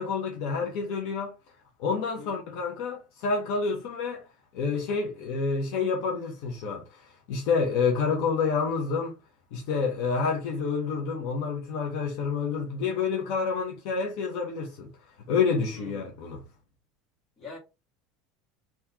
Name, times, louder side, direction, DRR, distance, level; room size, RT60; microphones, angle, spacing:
voice 1, 0.0-1.3 1.8-4.2 4.5-9.1 9.5-14.9 15.3-16.4, left 5 dB, 60° left, 1.0 m, -28 dB
voice 2, 15.7-16.1 17.4-17.6, left 4 dB, 25° left, 1.9 m, -44 dB
3.7 x 3.0 x 2.9 m
supercardioid pair, 150°, 0 cm